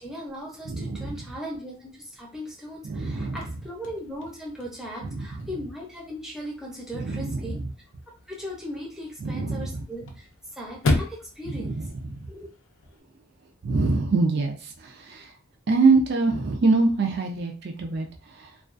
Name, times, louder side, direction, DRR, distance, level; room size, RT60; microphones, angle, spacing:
voice 1, 0.0-7.6 8.3-11.8 12.3-12.5, equal, ahead, -4 dB, 0.6 m, -38 dB
voice 2, 0.7-1.1 2.8-3.4 5.0-5.3 7.0-7.6 9.2-9.8 11.5-11.9 12.2-12.3 13.6-15.3 15.7-18.1 18.4-18.5, right 3 dB, 55° right, 2 dB, 0.4 m, -24 dB
Chirp tweet / Car / Slam, 3.0-13.0, left 2 dB, 65° left, 0.4 m, -35 dB
2.3 x 2.3 x 2.4 m, 0.38 s
head